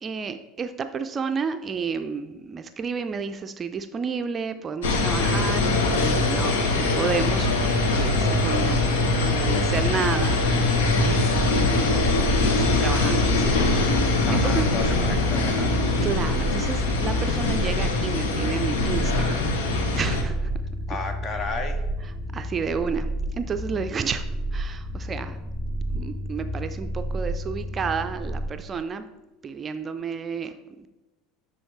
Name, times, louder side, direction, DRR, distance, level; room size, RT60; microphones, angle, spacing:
voice 1, 0.0-13.9 14.3-14.7 16.0-19.5 19.9-20.5 21.3-21.4 22.3-24.3 24.5-25.4 25.9-29.1 29.4-30.9, right 5 dB, 30° right, 9 dB, 0.4 m, -31 dB
sound 1, 4.8-20.2, left 3 dB, 70° left, 1.0 m, -23 dB
sound 2, 11.3-28.5, right 1 dB, 10° left, 0.8 m, -30 dB
voice 2, 14.2-15.7 20.9-21.8, left 4 dB, 40° left, 7 dB, 1.0 m, -32 dB
10.0 x 4.1 x 3.2 m, 1.0 s
figure-of-eight pair, 75°, 0 cm